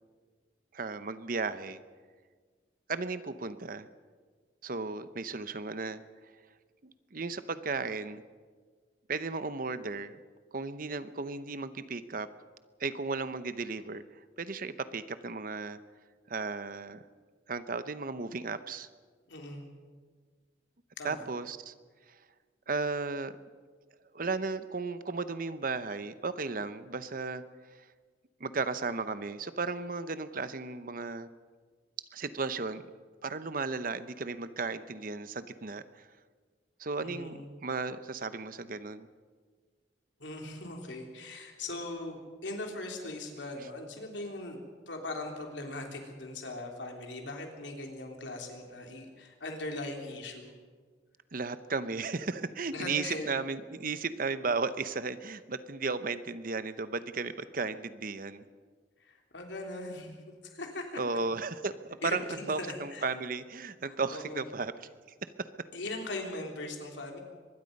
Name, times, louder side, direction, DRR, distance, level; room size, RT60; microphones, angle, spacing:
voice 1, 0.7-1.8 2.9-3.9 4.6-6.0 6.8-8.2 9.1-10.2 10.5-12.3 12.8-14.0 14.4-15.8 16.3-17.0 17.5-18.9 21.0-21.7 22.7-23.3 24.1-27.4 28.4-31.3 32.1-32.8 33.2-36.1 36.8-39.1 51.3-58.4 61.0-62.2 62.5-64.7, right 4 dB, 50° right, 13 dB, 0.8 m, -35 dB
voice 2, 19.3-19.7 21.0-21.3 37.0-37.6 40.2-44.6 44.9-50.6 52.7-53.3 59.0-60.9 62.0-63.1 63.8-64.5 65.7-67.2, left 2 dB, 75° left, 2 dB, 3.5 m, -40 dB
24.0 x 21.0 x 5.4 m, 1.5 s
head